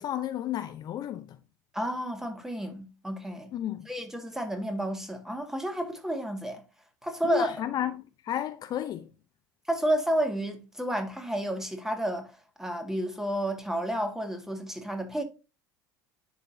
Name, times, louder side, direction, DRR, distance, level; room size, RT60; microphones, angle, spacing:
voice 1, 0.0-1.4 3.5-3.9 7.2-9.1, left 11 dB, 40° left, 0.6 m, -32 dB
voice 2, 1.7-3.5 3.9-6.6 7.0-7.5 9.7-12.3 12.6-15.2, right 1 dB, 5° right, 1.8 m, -31 dB
10.5 x 4.1 x 2.7 m
hypercardioid pair, 80°, 10 cm